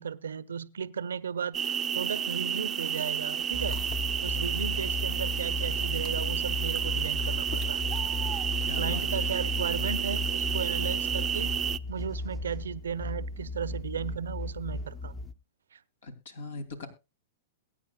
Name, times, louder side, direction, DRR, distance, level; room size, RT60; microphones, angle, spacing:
voice 1, 0.0-3.8 4.2-7.9 8.3-8.5 8.7-11.5 11.9-15.1 15.7-15.8, right 7 dB, 85° right, 0.7 m, -35 dB
sound 1, 1.5-11.8, right 8 dB, 25° right, 0.5 m, -31 dB
sound 2, 3.3-8.9, left 8 dB, 40° left, 1.2 m, -51 dB
sound 3, 3.5-15.3, left 2 dB, 20° left, 0.9 m, -35 dB
voice 2, 8.6-9.3 16.0-16.9, left 3 dB, 75° left, 2.9 m, -40 dB
22.0 x 9.1 x 2.3 m
hypercardioid pair, 120°, 0 cm